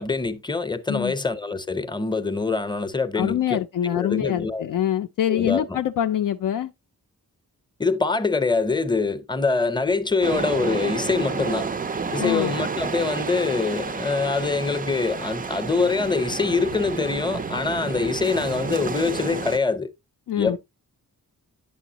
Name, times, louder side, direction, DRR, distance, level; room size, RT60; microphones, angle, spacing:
voice 1, 0.0-4.6 5.3-5.6 7.8-11.7 12.1-19.9 20.4-20.6, left 4 dB, 15° left, 0.7 m, -24 dB
voice 2, 3.2-6.7 12.2-12.5 20.3-20.6, left 10 dB, 65° left, 0.5 m, -24 dB
sound 1, 10.2-19.6, right 5 dB, 25° right, 0.4 m, -30 dB
9.2 x 6.9 x 2.7 m
wide cardioid pair, 155°, 35 cm